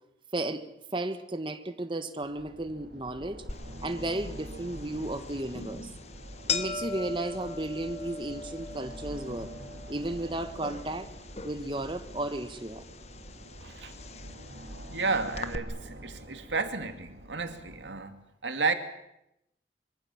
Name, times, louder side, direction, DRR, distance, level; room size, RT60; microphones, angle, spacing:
voice 1, 0.3-0.6 0.9-3.4 3.8-5.9 6.5-9.5 9.9-11.1 11.4-12.8, right 1 dB, 25° right, 8 dB, 1.3 m, -34 dB
sound 1, 2.2-17.9, equal, 65° right, 4.9 m, -46 dB
sound 2, 3.5-15.6, left 5 dB, 35° left, 1.3 m, -41 dB
voice 2, 13.6-13.9 14.9-18.7, right 4 dB, 90° right, 7 dB, 2.6 m, -32 dB
24.5 x 24.0 x 7.3 m, 0.84 s
head